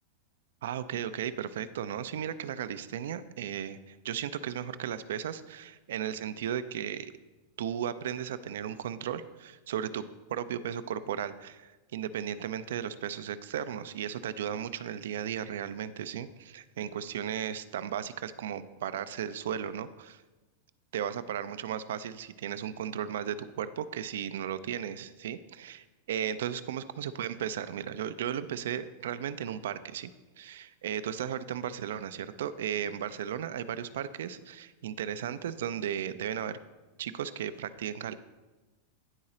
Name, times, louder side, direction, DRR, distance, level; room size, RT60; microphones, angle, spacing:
voice 1, 0.6-7.1 7.6-10.0 10.3-20.2 20.9-30.1 30.4-36.6 37.0-38.2, right 9 dB, 80° right, 13 dB, 0.4 m, -35 dB
9.8 x 3.8 x 4.2 m, 1.2 s
hypercardioid pair, 120°, 0 cm